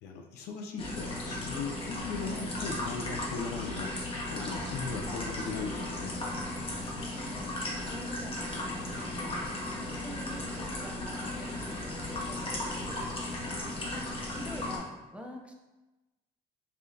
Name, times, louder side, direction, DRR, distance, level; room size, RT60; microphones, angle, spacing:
voice 1, 0.0-6.2 13.4-13.8, left 4 dB, 80° left, 3 dB, 0.5 m, -38 dB
sound 1, 0.8-14.8, left 1 dB, 30° left, 0.8 m, -36 dB
voice 2, 6.8-7.5 7.9-9.5 9.8-13.0 14.3-15.5, right 1 dB, 5° right, 1 dB, 0.4 m, -46 dB
4.8 x 2.5 x 2.5 m, 1.1 s
cardioid pair, 110°, 17 cm